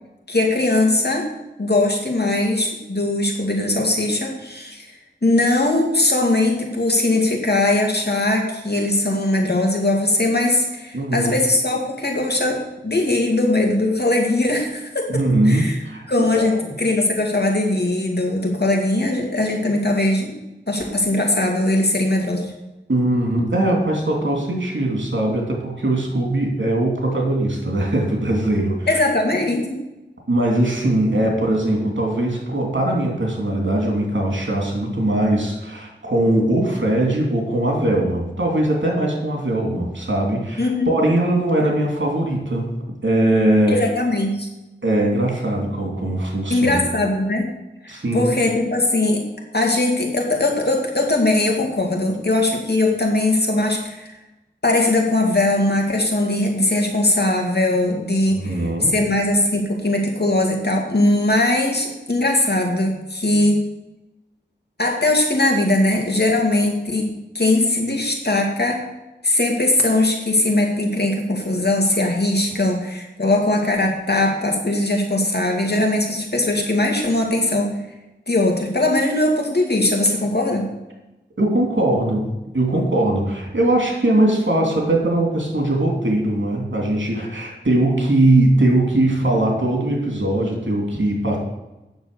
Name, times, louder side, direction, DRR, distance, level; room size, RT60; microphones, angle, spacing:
voice 1, 0.3-1.3 1.6-4.9 5.2-15.8 16.1-16.5 16.8-20.4 20.7-22.5 28.9-29.8 40.6-40.9 43.7-44.5 46.5-47.4 47.8-49.2 49.5-54.2 54.6-63.6 64.8-68.8 69.2-77.7 78.3-80.7, left 2 dB, 60° left, 1 dB, 2.4 m, -20 dB
voice 2, 10.9-11.3 15.1-16.1 16.3-16.5 22.9-28.9 30.3-42.8 43.0-43.8 44.8-46.8 47.9-48.3 58.4-58.9 81.4-91.4, right 1 dB, 80° right, 0 dB, 3.0 m, -20 dB
9.1 x 7.1 x 7.0 m, 0.98 s
wide cardioid pair, 40°, 19 cm